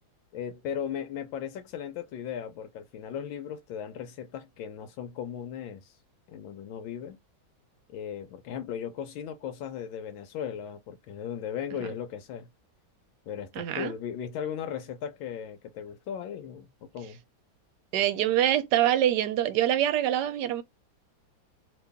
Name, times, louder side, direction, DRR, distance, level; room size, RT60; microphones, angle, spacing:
voice 1, 0.3-6.0 6.3-7.2 7.9-12.5 13.3-17.2, left 8 dB, 85° left, 1.4 m, -37 dB
voice 2, 13.6-13.9 17.9-20.6, right 11 dB, 70° right, 1.1 m, -25 dB
3.0 x 2.8 x 3.5 m
omnidirectional pair, 2.1 m